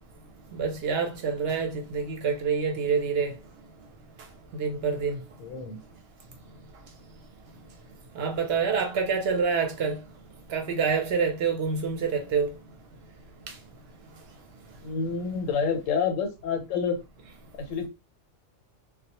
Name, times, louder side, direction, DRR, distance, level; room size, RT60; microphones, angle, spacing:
voice 1, 0.5-3.3 4.6-5.2 8.2-10.0 10.5-12.5, right 5 dB, 60° right, 0.7 m, -27 dB
voice 2, 5.4-5.8 14.8-17.0 17.6-17.9, left 6 dB, 85° left, 1.0 m, -28 dB
2.2 x 2.0 x 2.8 m
omnidirectional pair, 1.3 m